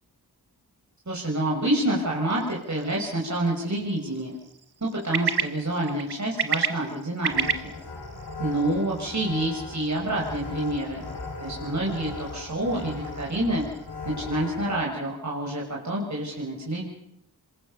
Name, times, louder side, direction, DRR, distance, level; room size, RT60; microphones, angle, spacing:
voice 1, 1.1-4.3 4.8-7.7 8.4-11.1 11.4-13.6 14.0-16.8, right 1 dB, 45° right, -2 dB, 5.9 m, -28 dB
sound 1, 2.3-13.9, right 6 dB, 80° right, 1.6 m, -35 dB
sound 2, 7.3-14.7, left 3 dB, 70° left, 7.5 m, -38 dB
27.0 x 23.0 x 6.9 m, 0.79 s
wide cardioid pair, 60°, 39 cm